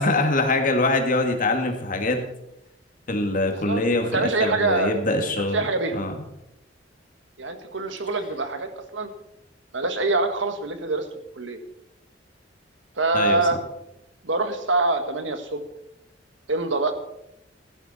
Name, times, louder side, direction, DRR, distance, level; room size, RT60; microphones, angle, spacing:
voice 1, 0.0-2.2 3.1-5.7 5.9-6.1 13.1-13.4, left 2 dB, 45° left, 4 dB, 2.0 m, -23 dB
voice 2, 3.5-5.0 5.5-6.0 7.4-9.1 9.7-11.1 11.3-11.6 13.0-13.6 14.2-15.6 16.5-16.9, right 3 dB, 85° right, 7 dB, 1.7 m, -25 dB
16.5 x 11.5 x 4.2 m, 0.83 s
head